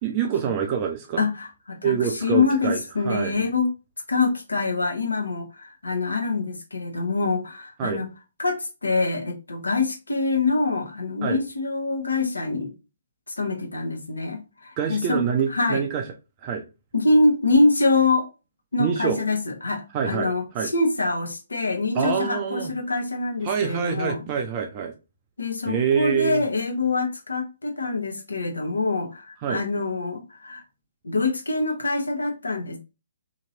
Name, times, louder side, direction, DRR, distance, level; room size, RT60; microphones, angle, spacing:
voice 1, 0.0-1.2 1.8-3.5 7.8-8.0 11.2-11.4 14.8-16.0 16.4-16.7 18.8-19.2 19.9-20.7 21.9-22.7 23.4-24.9 25.7-26.4 29.4-29.6, right 7 dB, 30° right, 0.5 m, -26 dB
voice 2, 1.2-3.7 4.1-8.1 8.4-12.7 13.3-15.2 15.5-15.8 16.9-18.3 18.7-24.2 25.4-30.6 31.0-32.8, left 3 dB, 75° left, 0.9 m, -25 dB
2.8 x 2.8 x 2.7 m
figure-of-eight pair, 130°, 0 cm